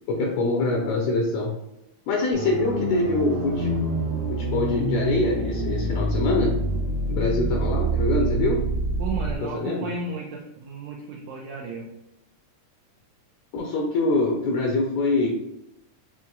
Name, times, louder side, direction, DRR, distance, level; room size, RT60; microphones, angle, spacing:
voice 1, 0.1-1.5 2.1-3.8 4.3-6.5 7.1-8.6 9.5-9.9 13.5-15.3, left 2 dB, 80° left, 0 dB, 1.7 m, -24 dB
sound 1, 2.3-9.3, right 2 dB, 65° right, 1.8 m, -26 dB
voice 2, 9.0-11.9, right 3 dB, 90° right, -1 dB, 1.5 m, -34 dB
5.9 x 2.8 x 2.3 m, 0.86 s
omnidirectional pair, 3.6 m